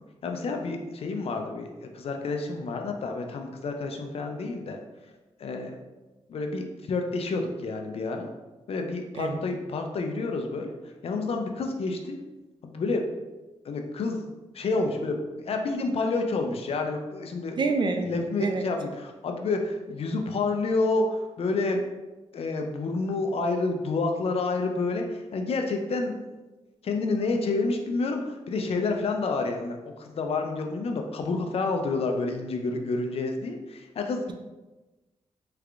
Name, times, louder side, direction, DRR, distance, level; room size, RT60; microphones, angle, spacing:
voice 1, 0.2-4.8 5.4-5.7 6.3-8.3 8.7-10.7 11.0-12.2 12.6-13.1 13.6-14.2 14.5-17.6 18.0-21.8 22.3-26.2 26.8-34.2, left 3 dB, 60° left, 4 dB, 0.4 m, -29 dB
voice 2, 17.6-18.1 18.4-18.6, right 4 dB, 45° right, 5 dB, 0.4 m, -26 dB
3.3 x 3.3 x 2.4 m, 1.1 s
cardioid pair, 100°, 11 cm